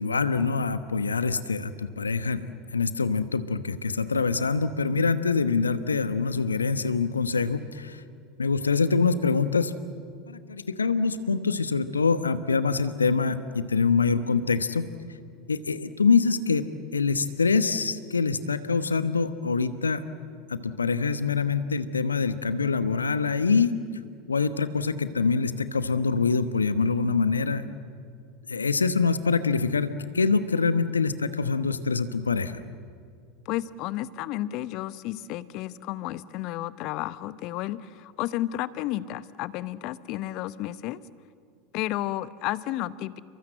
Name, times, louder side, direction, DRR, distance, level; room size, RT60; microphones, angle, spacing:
voice 1, 0.0-2.5 2.7-8.0 8.4-9.7 10.3-14.9 15.5-20.0 20.5-23.7 24.3-27.6 28.5-32.5, left 4 dB, 85° left, 13 dB, 1.1 m, -25 dB
voice 2, 33.4-41.0 41.7-43.2, left 14 dB, 50° left, 17 dB, 0.9 m, -32 dB
29.5 x 23.0 x 7.8 m, 2.3 s
figure-of-eight pair, 80°, 0 cm